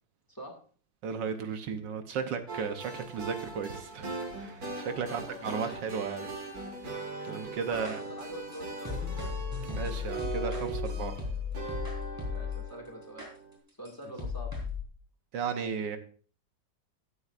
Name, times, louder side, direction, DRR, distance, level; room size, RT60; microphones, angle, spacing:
voice 1, 1.0-4.1 4.4-6.3 7.2-8.0 9.6-11.2 15.3-16.0, right 6 dB, 75° right, 8 dB, 1.5 m, -35 dB
sound 1, 2.5-13.6, right 4 dB, 50° right, 2.3 m, -40 dB
voice 2, 5.0-5.8 7.7-9.2 12.3-13.3 13.8-14.5, equal, 10° left, 3 dB, 1.9 m, -44 dB
sound 2, 7.8-12.7 13.2-13.3 13.9-14.0 14.2-14.8, left 6 dB, 10° right, 4.1 m, -35 dB
16.5 x 8.7 x 2.5 m, 0.42 s
omnidirectional pair, 2.0 m